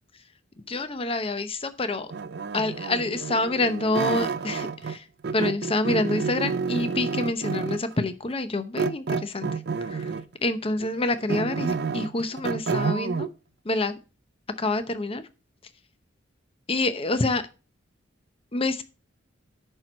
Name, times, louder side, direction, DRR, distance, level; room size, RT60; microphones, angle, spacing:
voice 1, 0.7-2.1 2.5-5.0 5.3-10.1 10.4-13.3 13.6-13.9 14.6-15.2 16.7-17.4 18.5-18.8, left 2 dB, 30° left, 11 dB, 0.7 m, -27 dB
sound 1, 2.1-5.0 5.2-7.9 8.8-10.3 10.8-13.3, right 5 dB, 55° right, 0.5 m, -29 dB
10.5 x 4.5 x 5.3 m, 0.33 s
head